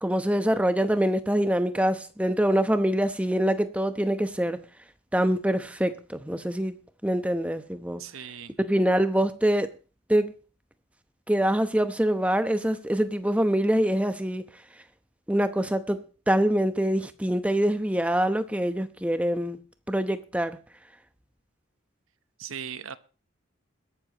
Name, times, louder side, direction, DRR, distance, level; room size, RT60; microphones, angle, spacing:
voice 1, 0.0-4.6 5.1-6.7 7.0-8.0 8.7-9.7 10.1-10.3 11.3-14.4 15.3-16.0 16.3-19.6 19.9-20.6, right 1 dB, 5° right, 0.9 m, -24 dB
voice 2, 8.0-8.6 22.4-23.0, right 8 dB, 85° right, 0.9 m, -38 dB
21.5 x 11.5 x 3.0 m
head